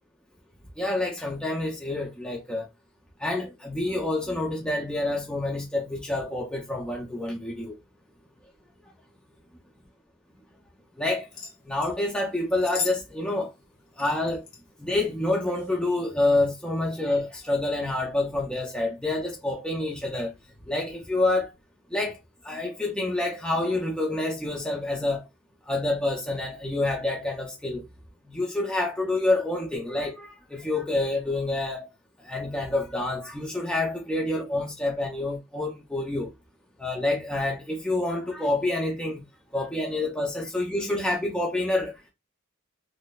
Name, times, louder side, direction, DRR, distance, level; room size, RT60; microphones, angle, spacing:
voice 1, 0.8-2.7 3.2-7.8 11.0-11.3 11.7-13.5 14.0-14.4 14.8-20.3 20.7-21.5 21.9-22.2 22.4-25.3 25.7-27.8 28.3-31.9 32.2-36.3 36.8-39.2 39.5-41.9, left 2 dB, 5° left, 0.6 m, -27 dB
sound 1, 11.3-11.9 12.5-13.0 13.3-13.4 14.0-14.6 15.4-15.7 16.3-16.4, left 5 dB, 65° left, 1.2 m, -36 dB
3.2 x 2.1 x 3.9 m
head